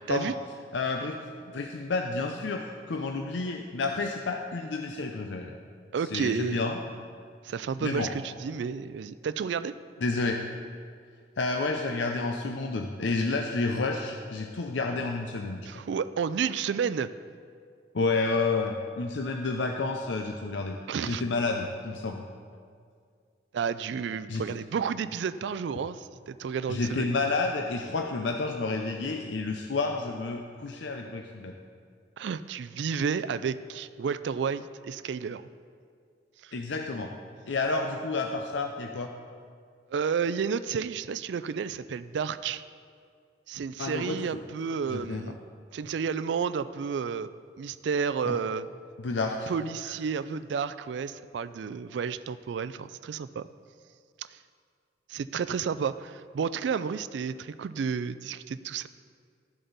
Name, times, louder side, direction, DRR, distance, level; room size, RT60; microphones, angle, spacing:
voice 1, 0.7-1.2 1.5-5.6 6.1-6.8 7.8-8.1 10.0-10.4 11.4-15.7 17.9-20.8 21.1-22.2 24.3-24.4 26.7-31.5 36.5-37.1 37.5-39.1 43.8-44.2 44.9-45.2 48.3-48.4 49.0-49.5, left 3 dB, 80° left, 3 dB, 0.6 m, -30 dB
voice 2, 5.9-6.6 7.4-9.7 15.7-17.1 20.9-21.2 23.5-27.1 32.2-35.4 36.4-36.6 39.9-42.6 43.5-45.4 45.7-47.3 47.6-48.7 49.5-53.5 54.3-54.4 55.1-58.9, right 6 dB, 75° right, 13 dB, 0.3 m, -31 dB
13.5 x 7.7 x 4.0 m, 2.1 s
head